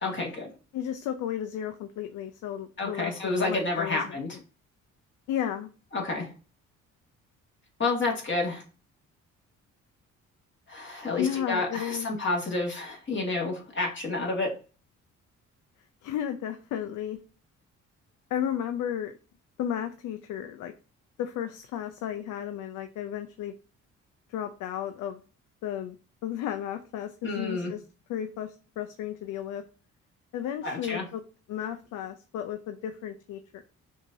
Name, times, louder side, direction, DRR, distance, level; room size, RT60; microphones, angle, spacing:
voice 1, 0.0-0.5 2.8-4.4 5.9-6.3 7.8-8.6 10.7-14.5 27.2-27.7 30.6-31.1, left 3 dB, 40° left, -1 dB, 1.8 m, -29 dB
voice 2, 0.7-4.2 5.3-5.7 11.2-12.1 16.0-17.2 18.3-19.1 19.6-20.7 21.2-23.5 24.3-25.2 25.6-26.0 26.2-27.8 28.1-29.6 30.3-31.2 31.5-33.6, left 10 dB, 80° left, 7 dB, 0.5 m, -33 dB
5.8 x 2.7 x 2.6 m, 0.36 s
cardioid pair, 90°, 30 cm